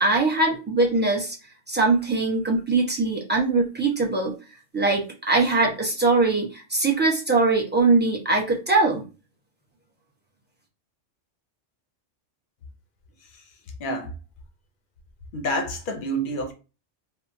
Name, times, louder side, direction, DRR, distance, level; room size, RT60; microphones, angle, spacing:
voice 1, 0.0-1.3 1.7-4.3 4.7-9.0, right 3 dB, 15° right, 0.3 m, -21 dB
voice 2, 15.3-16.5, right 1 dB, 60° left, 0.5 m, -28 dB
2.7 x 2.0 x 2.5 m
omnidirectional pair, 1.3 m